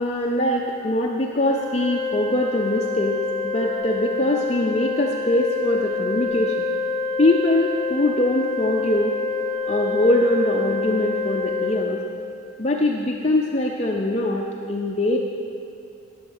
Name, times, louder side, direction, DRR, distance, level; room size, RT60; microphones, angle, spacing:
voice 1, 0.0-3.2 3.4-6.7 7.2-9.1 9.7-12.0 12.6-15.2, left 1 dB, 30° left, -1 dB, 0.5 m, -22 dB
Organ, 1.4-12.5, left 4 dB, 15° left, 1.0 m, -27 dB
10.5 x 7.1 x 6.5 m, 2.6 s
head